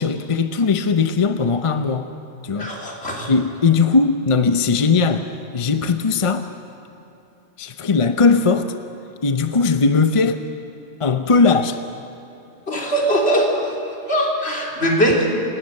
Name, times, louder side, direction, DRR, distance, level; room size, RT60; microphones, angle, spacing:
voice 1, 0.0-2.1 2.4-2.7 3.3-5.3 5.5-6.5 7.6-8.7 9.2-10.4 11.0-11.8, left 4 dB, 35° left, 0.6 m, -18 dB
voice 2, 2.6-3.3 12.7-13.7 14.1-15.3, equal, 55° left, 3.7 m, -20 dB
28.0 x 18.5 x 6.6 m
omnidirectional pair, 1.3 m